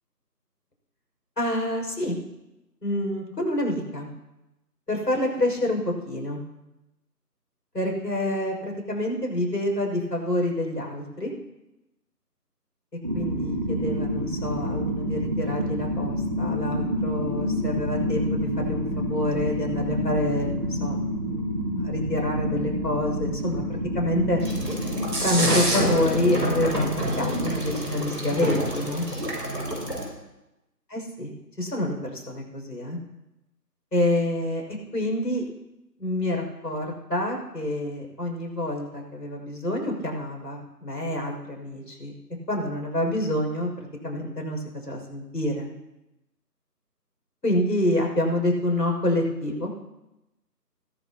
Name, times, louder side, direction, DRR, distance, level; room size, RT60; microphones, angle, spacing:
voice 1, 1.4-2.1 2.8-4.1 4.9-6.4 7.7-11.3 13.1-21.0 21.3-21.4 21.8-24.4 25.2-29.1 30.9-31.3 31.6-33.0 33.9-35.4 36.0-42.1 42.5-43.7 44.0-45.7 47.4-49.7, left 1 dB, 75° left, 1 dB, 6.0 m, -27 dB
sound 1, 13.0-27.5, equal, 25° right, 1.5 m, -28 dB
sound 2, 24.4-30.0, right 1 dB, 80° right, 6.3 m, -27 dB
21.0 x 12.5 x 2.9 m, 0.96 s
figure-of-eight pair, 165°, 49 cm